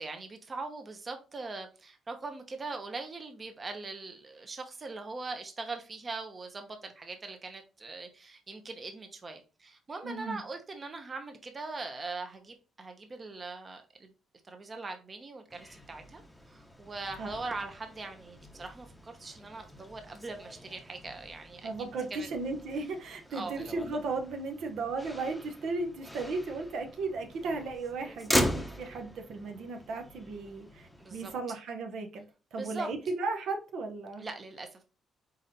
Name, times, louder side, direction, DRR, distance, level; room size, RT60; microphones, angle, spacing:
voice 1, 0.0-14.1 14.5-16.2 16.5-21.7 22.1-22.3 23.3-23.6 31.0-31.3 32.6-32.9 34.2-34.8, right 3 dB, 35° right, 0.8 m, -41 dB
voice 2, 10.0-10.4 17.2-17.3 21.6-32.2 32.5-34.3, right 3 dB, 75° right, 0.7 m, -35 dB
Motor vehicle (road), 15.5-31.3, equal, 5° left, 0.7 m, -39 dB
4.0 x 4.0 x 2.6 m
cardioid pair, 90°, 0 cm